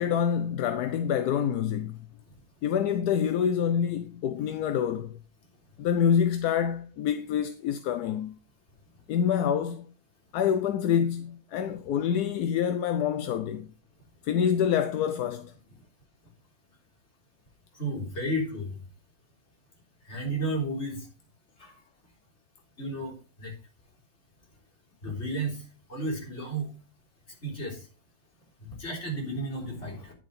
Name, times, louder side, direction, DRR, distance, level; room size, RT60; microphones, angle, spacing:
voice 1, 0.0-2.0 2.6-5.1 5.8-8.3 9.1-9.9 10.3-13.7 14.2-15.5, left 8 dB, 65° left, 1.1 m, -26 dB
voice 2, 17.8-18.7 20.1-21.0 22.8-23.1 23.4-23.5 25.0-25.6 25.9-26.7 27.4-27.8 28.8-30.1, right 1 dB, 35° left, 4.0 m, -32 dB
10.0 x 7.6 x 4.1 m
omnidirectional pair, 2.0 m